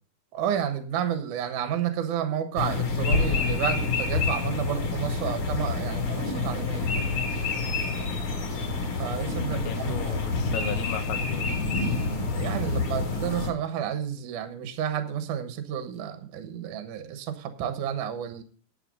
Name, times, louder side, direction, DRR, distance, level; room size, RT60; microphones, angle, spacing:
voice 1, 0.3-6.9 9.0-10.1 12.3-18.4, right 9 dB, 65° right, 9 dB, 2.3 m, -31 dB
sound 1, 2.6-13.5, left 3 dB, 45° left, 2.2 m, -28 dB
voice 2, 9.5-11.5, left 10 dB, 80° left, 5 dB, 2.5 m, -36 dB
10.0 x 9.2 x 5.3 m, 0.42 s
omnidirectional pair, 4.4 m